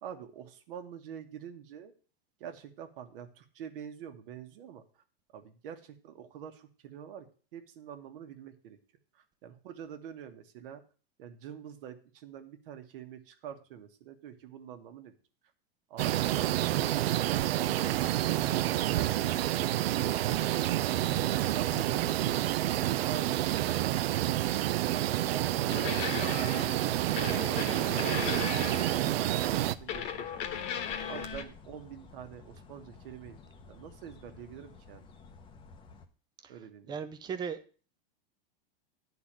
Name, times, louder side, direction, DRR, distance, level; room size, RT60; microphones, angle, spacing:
voice 1, 0.0-1.9 2.4-5.0 5.3-7.3 7.5-8.8 9.1-10.8 11.2-15.1 15.9-17.2 21.4-22.6 23.0-28.1 28.6-33.4 33.7-35.1 36.5-37.0, right 9 dB, 65° right, 1.3 m, -46 dB
sound 1, 16.0-29.7, right 14 dB, 80° right, 0.6 m, -29 dB
voice 2, 21.7-22.0 36.4-36.5 36.9-37.6, right 6 dB, 15° right, 0.5 m, -37 dB
sound 2, 25.7-29.2 29.9-31.4, left 8 dB, 40° left, 1.2 m, -37 dB
sound 3, 28.0-36.0, left 4 dB, 15° left, 0.7 m, -52 dB
10.0 x 4.0 x 7.3 m
supercardioid pair, 150°, 30 cm